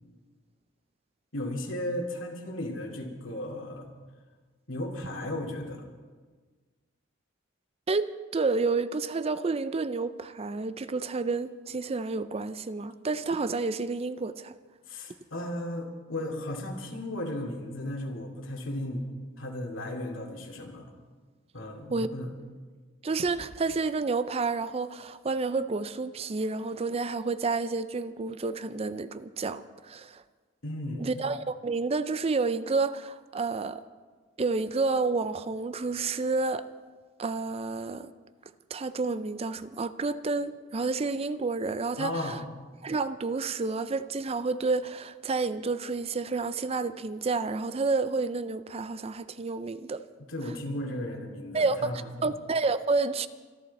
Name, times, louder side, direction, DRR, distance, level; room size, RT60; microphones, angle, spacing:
voice 1, 1.3-3.9 4.7-5.9 14.9-19.0 19.4-20.8 21.5-22.3 30.6-31.1 42.0-42.5 50.3-52.3, left 1 dB, 70° left, 2.7 m, -35 dB
voice 2, 7.9-14.5 21.9-22.1 23.0-30.2 31.0-33.8 34.4-36.7 37.2-38.1 38.7-42.4 42.8-50.0 51.5-51.9 52.2-53.3, right 3 dB, 30° right, 0.4 m, -30 dB
26.0 x 11.0 x 4.2 m
head